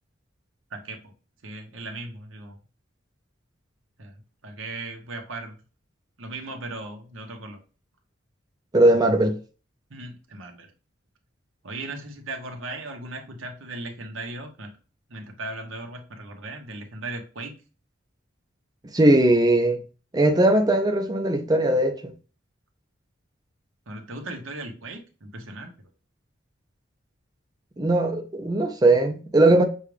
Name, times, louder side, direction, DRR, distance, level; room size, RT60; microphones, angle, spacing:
voice 1, 0.7-1.1 1.4-2.6 4.0-4.1 4.4-5.6 6.2-7.6 9.9-10.7 11.6-14.7 15.1-17.6 23.9-25.7, right 2 dB, 85° right, 1.1 m, -37 dB
voice 2, 8.7-9.4 18.9-19.8 20.1-22.1 27.8-29.6, right 1 dB, 20° right, 0.5 m, -19 dB
6.5 x 2.4 x 3.3 m
head